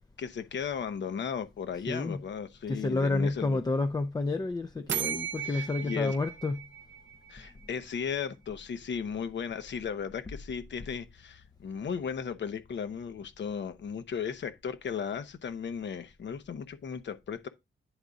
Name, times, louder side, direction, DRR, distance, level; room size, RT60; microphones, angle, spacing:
voice 1, 0.2-3.6 5.4-6.2 7.3-17.5, left 7 dB, 70° left, 1.0 m, -36 dB
voice 2, 1.9-2.2 2.7-6.6, left 3 dB, 20° left, 0.4 m, -30 dB
sound 1, 4.9-7.6, right 10 dB, 70° right, 0.6 m, -36 dB
9.9 x 3.7 x 3.9 m
wide cardioid pair, 110°, 19 cm